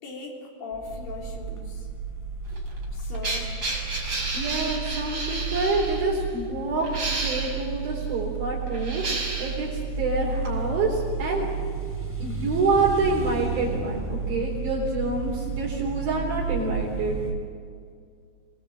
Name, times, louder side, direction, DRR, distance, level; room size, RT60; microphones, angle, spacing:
voice 1, 0.0-1.9 2.9-3.5, left 3 dB, 65° left, -1 dB, 5.3 m, -38 dB
sound 1, 0.7-17.3, right 5 dB, 5° left, 4.1 m, -32 dB
sound 2, 2.5-6.0 6.8-7.6 8.7-9.7 10.4-10.5, right 2 dB, 25° right, 5.8 m, -31 dB
voice 2, 4.3-11.5 12.2-17.2, right 3 dB, 70° right, -4 dB, 5.6 m, -27 dB
28.5 x 21.0 x 8.0 m, 2.2 s
omnidirectional pair, 4.5 m